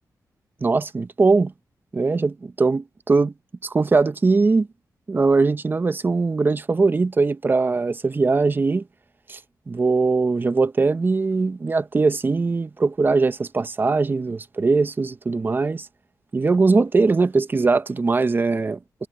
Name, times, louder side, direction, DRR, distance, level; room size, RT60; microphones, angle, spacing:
voice 1, 0.6-1.5 1.9-3.3 3.6-4.7 5.1-8.8 9.3-9.4 9.7-15.9 16.3-18.8, right 3 dB, 30° right, 0.6 m, -20 dB
wide cardioid pair, 125°, 7 cm